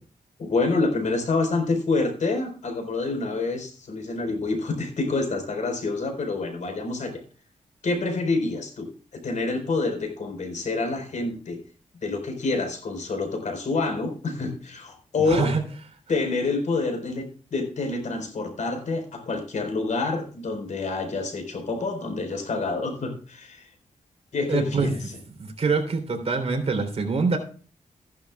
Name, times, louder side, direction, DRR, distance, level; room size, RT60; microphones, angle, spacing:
voice 1, 0.4-7.2 7.8-11.6 12.0-15.5 16.1-23.7 24.3-25.2, left 3 dB, 65° left, 4 dB, 4.4 m, -27 dB
voice 2, 15.3-15.6 24.5-24.9 25.4-27.4, right 4 dB, 50° right, 4 dB, 3.4 m, -24 dB
15.0 x 11.5 x 2.3 m, 0.40 s
cardioid pair, 95°, 13 cm